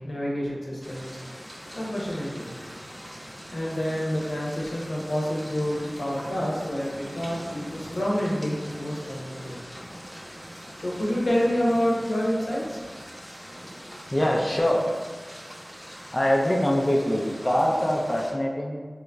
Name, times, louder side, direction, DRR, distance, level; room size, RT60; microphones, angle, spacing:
voice 1, 0.0-9.6 10.8-12.8, equal, 90° left, -5 dB, 0.7 m, -28 dB
sound 1, 0.8-18.3, equal, 5° right, 0.8 m, -42 dB
voice 2, 14.1-14.9 16.1-18.9, equal, 25° left, -1 dB, 0.4 m, -23 dB
3.6 x 3.0 x 2.2 m, 1.5 s
wide cardioid pair, 45°, 0 cm